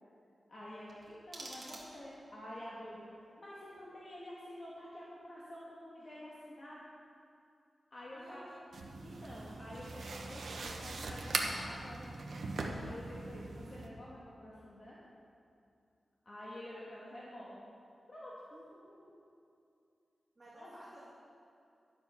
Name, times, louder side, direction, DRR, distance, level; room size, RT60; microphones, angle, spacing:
voice 1, 0.5-3.0 3.4-6.8 7.9-8.5 9.0-15.0 16.2-17.6 18.1-18.3 20.5-20.7, left 1 dB, 40° left, -7 dB, 1.5 m, -49 dB
sound 1, 0.9-2.3, right 2 dB, 40° right, 1.7 m, -50 dB
voice 2, 8.1-8.6 18.5-19.1 20.4-21.1, right 1 dB, 25° right, -12 dB, 2.6 m, -54 dB
sound 2, 8.7-13.9, right 3 dB, 80° right, 0.9 m, -40 dB
11.0 x 7.1 x 5.7 m, 2.5 s
wide cardioid pair, 150°, 0 cm